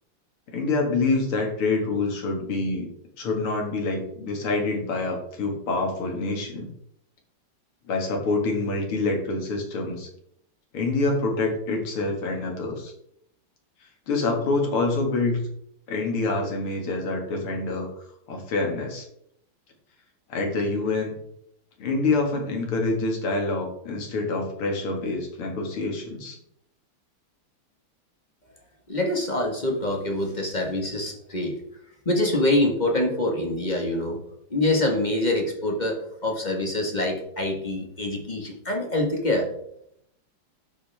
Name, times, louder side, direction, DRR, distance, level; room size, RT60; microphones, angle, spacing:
voice 1, 0.5-2.9 3.2-6.7 7.9-10.1 10.7-12.9 14.1-15.4 15.9-17.9 18.3-19.1 20.3-21.2 21.8-26.4, left 3 dB, 80° left, 2 dB, 3.0 m, -26 dB
voice 2, 28.9-31.5 32.0-34.2 34.5-39.5, left 1 dB, 20° left, 1 dB, 1.6 m, -25 dB
11.5 x 7.9 x 3.6 m, 0.73 s
omnidirectional pair, 2.4 m